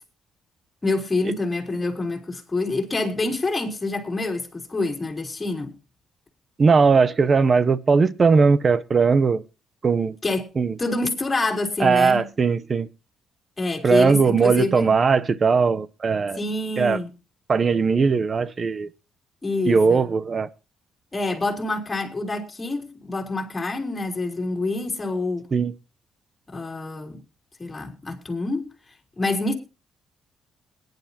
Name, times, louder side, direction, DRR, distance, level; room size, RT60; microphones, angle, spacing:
voice 1, 0.8-5.7 10.2-10.5 10.8-12.3 13.6-14.9 16.4-17.1 19.4-20.1 21.1-25.5 26.5-27.2 27.6-28.7 29.2-29.5, left 2 dB, 20° left, 3.6 m, -26 dB
voice 2, 6.6-9.4 9.8-10.2 10.6-10.7 11.8-12.9 13.8-16.4 16.8-17.0 17.5-18.9 19.7-20.5 25.5-25.7, right 5 dB, 40° right, 0.7 m, -19 dB
21.0 x 10.5 x 2.9 m
cardioid pair, 90°, 0 cm